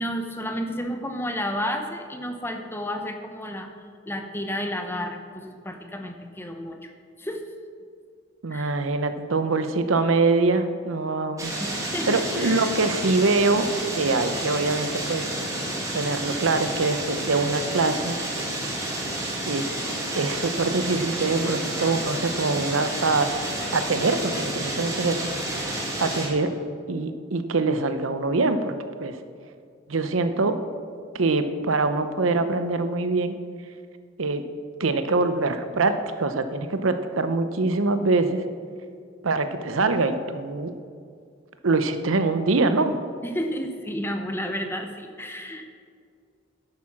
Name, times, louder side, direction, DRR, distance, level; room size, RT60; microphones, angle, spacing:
voice 1, 0.0-3.7 4.1-6.9 7.2-7.4 8.5-8.7 11.6-12.7 43.2-45.7, equal, 10° left, 5 dB, 0.8 m, -31 dB
voice 2, 8.4-11.5 12.1-15.3 15.9-18.2 19.5-19.7 20.2-23.3 23.7-26.5 26.9-28.7 29.0-29.2 29.9-30.6 31.1-33.4 34.2-34.4 34.8-38.4 39.2-40.7 41.6-43.0, right 3 dB, 85° right, 9 dB, 0.8 m, -24 dB
sound 1, 11.4-26.3, right 1 dB, 15° right, 2.1 m, -30 dB
11.0 x 8.6 x 6.0 m, 2.2 s
head